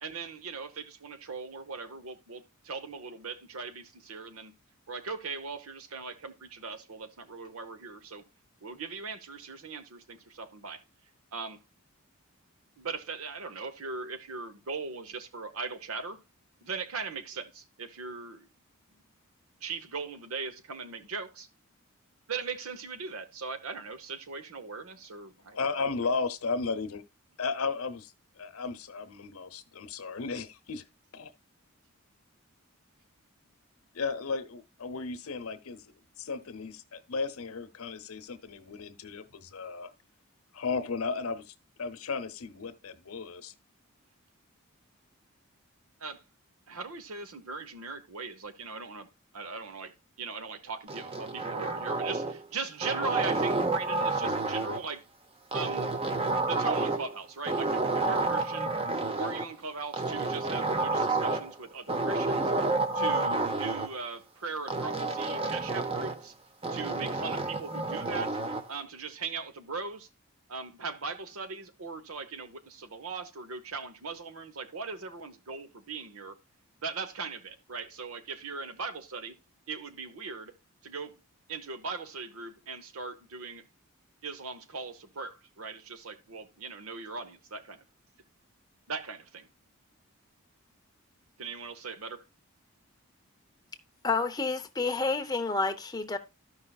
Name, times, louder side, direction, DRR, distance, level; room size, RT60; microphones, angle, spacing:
voice 1, 0.0-4.5 4.9-8.2 8.6-10.8 11.3-11.6 12.8-16.2 16.6-18.5 19.6-21.5 22.3-25.8 46.0-46.2 46.7-49.1 49.3-55.0 55.5-56.1 56.4-58.7 59.2-62.5 62.9-66.3 66.7-68.4 68.7-70.1 70.5-76.4 76.8-79.3 79.7-80.5 80.8-81.1 81.5-83.6 84.2-87.8 88.9-89.5 91.4-92.2, right 4 dB, 85° right, 0.9 m, -39 dB
voice 2, 25.5-27.0 27.4-28.1 28.4-30.8 31.1-31.3 33.9-35.8 36.2-39.9 40.5-41.5 41.8-43.5, left 4 dB, 85° left, 0.9 m, -34 dB
sound 1, 50.9-52.4 52.8-54.9 55.5-57.2 57.5-59.5 59.9-61.5 61.9-63.9 64.7-66.2 66.6-68.7, right 3 dB, 25° right, 0.7 m, -30 dB
voice 3, 94.0-96.2, left 3 dB, 20° left, 0.7 m, -29 dB
13.5 x 5.6 x 2.3 m
head